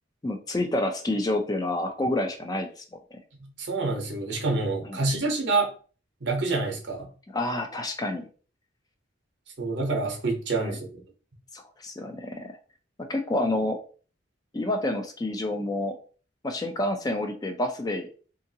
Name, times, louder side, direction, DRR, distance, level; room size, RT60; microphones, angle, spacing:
voice 1, 0.2-3.2 4.8-5.0 7.3-8.2 10.6-10.8 11.5-12.5 13.0-13.8 14.5-16.0 16.4-18.1, left 1 dB, 20° left, 5 dB, 0.3 m, -29 dB
voice 2, 3.4-5.7 6.2-7.1 9.6-10.9, right 3 dB, 65° right, 3 dB, 0.8 m, -27 dB
2.7 x 2.5 x 2.7 m, 0.39 s
head